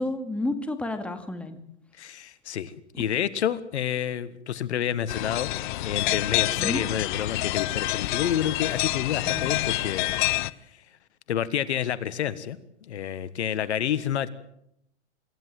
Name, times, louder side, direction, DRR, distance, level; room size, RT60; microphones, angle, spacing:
voice 1, 0.0-1.6 6.6-6.8 9.2-9.5, left 2 dB, 5° left, 7 dB, 2.2 m, -30 dB
voice 2, 2.0-5.5 5.8-10.1 11.3-12.6 12.9-14.3, left 9 dB, 70° left, 15 dB, 1.6 m, -29 dB
sound 1, 5.1-10.5, left 17 dB, 45° left, 0.8 m, -27 dB
27.0 x 15.0 x 7.7 m, 0.74 s
hypercardioid pair, 130°, 35 cm